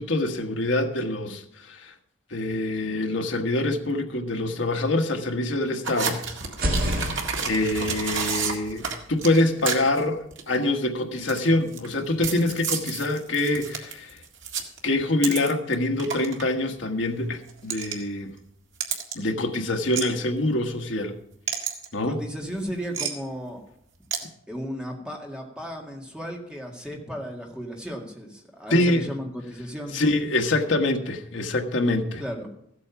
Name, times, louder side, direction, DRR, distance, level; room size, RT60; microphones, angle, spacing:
voice 1, 0.0-1.9 2.3-6.2 6.7-14.2 14.8-18.3 19.1-21.1 21.9-22.2 28.7-29.1 29.9-32.2, left 2 dB, 65° left, 1.4 m, -25 dB
sound 1, 5.8-10.0 10.3-10.6 11.2-11.9 12.2-15.7 16.0-16.4 17.5-17.9 18.8-19.1 19.9-20.0 21.5-21.9 22.9-23.1 24.1-24.2, right 6 dB, 65° right, 1.9 m, -30 dB
sound 2, 6.5-10.3, equal, 45° right, 2.2 m, -32 dB
voice 2, 22.0-23.6 24.5-30.0 32.2-32.5, equal, 5° right, 2.0 m, -35 dB
14.5 x 8.5 x 5.8 m
head